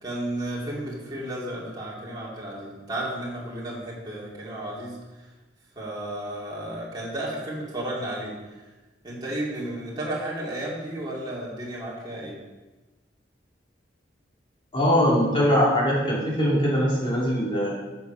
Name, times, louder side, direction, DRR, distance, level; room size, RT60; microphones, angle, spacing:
voice 1, 0.0-5.3 5.7-8.6 9.0-12.4, right 1 dB, 20° right, -5 dB, 2.4 m, -33 dB
voice 2, 14.7-17.7, equal, 25° left, -6 dB, 2.7 m, -21 dB
8.9 x 6.9 x 5.5 m, 1.2 s
head